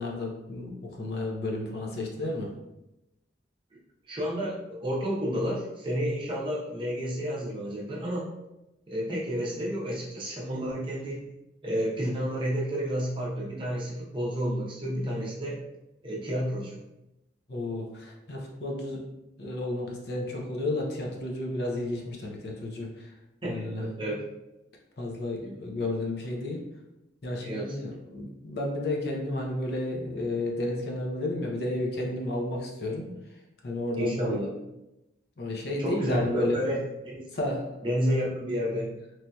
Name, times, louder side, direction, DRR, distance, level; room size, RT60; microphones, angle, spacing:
voice 1, 0.0-2.5 17.5-19.0 19.4-23.1 23.4-24.1 25.0-26.6 27.2-33.1 33.6-34.4 35.4-36.6 37.3-37.6, left 1 dB, 55° left, -1 dB, 0.5 m, -32 dB
voice 2, 4.1-8.3 8.9-11.3 11.6-15.7 16.0-16.8 23.4-24.2 25.4-25.8 27.4-27.8 33.9-34.5 35.8-37.2 37.8-38.9, equal, 25° right, -4 dB, 0.6 m, -31 dB
3.1 x 2.7 x 2.2 m, 0.93 s
head